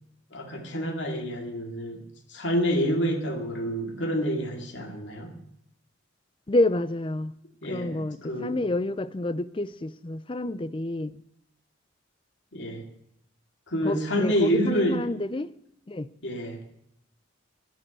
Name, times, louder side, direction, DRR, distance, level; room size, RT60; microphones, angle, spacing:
voice 1, 0.3-2.0 2.3-5.3 7.6-8.6 12.5-12.8 13.7-15.1 16.2-16.6, equal, 60° left, 2.4 m, -28 dB
voice 2, 6.5-7.3 7.7-11.1 13.8-15.5 15.9-16.1, left 2 dB, 25° left, 0.5 m, -28 dB
11.0 x 10.5 x 9.0 m
head